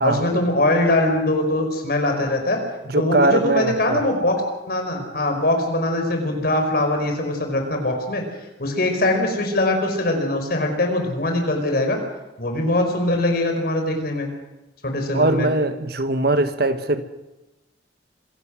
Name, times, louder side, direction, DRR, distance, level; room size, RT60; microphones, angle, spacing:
voice 1, 0.0-2.6 2.9-4.4 4.7-8.2 8.6-12.0 12.4-14.3 14.8-15.5, left 1 dB, 55° left, 4 dB, 4.8 m, -22 dB
voice 2, 2.9-4.0 15.1-17.0, right 2 dB, 60° right, 9 dB, 1.4 m, -21 dB
26.0 x 16.5 x 6.3 m, 1.0 s
head